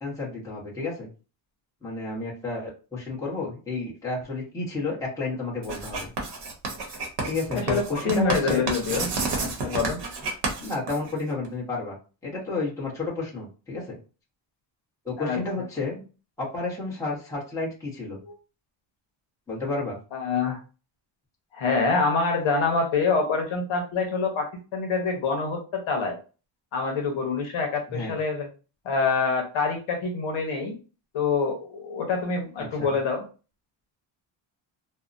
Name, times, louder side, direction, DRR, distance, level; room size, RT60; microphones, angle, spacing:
voice 1, 0.0-1.1 1.8-6.1 7.3-8.7 10.6-12.0 12.2-14.0 15.0-16.0 16.4-18.2 19.5-20.0 27.9-28.1 32.7-32.9, left 3 dB, 5° left, -6 dB, 0.9 m, -31 dB
Writing, 5.6-11.5, right 3 dB, 55° right, 0.9 m, -30 dB
voice 2, 7.5-9.1 9.4-10.0 15.2-15.4 20.1-20.6 21.5-26.2 26.7-28.5 28.8-30.8 31.1-33.2, left 4 dB, 75° left, 2 dB, 0.9 m, -26 dB
2.7 x 2.1 x 2.5 m, 0.34 s
cardioid pair, 150°, 48 cm